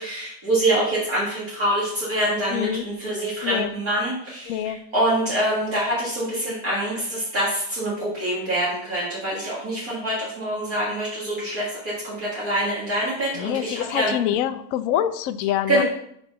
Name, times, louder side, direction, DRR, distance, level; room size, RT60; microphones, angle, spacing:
voice 1, 0.0-14.1 15.7-15.8, right 1 dB, 50° right, -7 dB, 2.4 m, -25 dB
voice 2, 2.5-2.8 3.4-3.7 4.5-4.8 13.4-15.8, left 11 dB, 75° left, 11 dB, 0.7 m, -25 dB
6.0 x 5.8 x 5.3 m, 0.70 s
omnidirectional pair, 2.0 m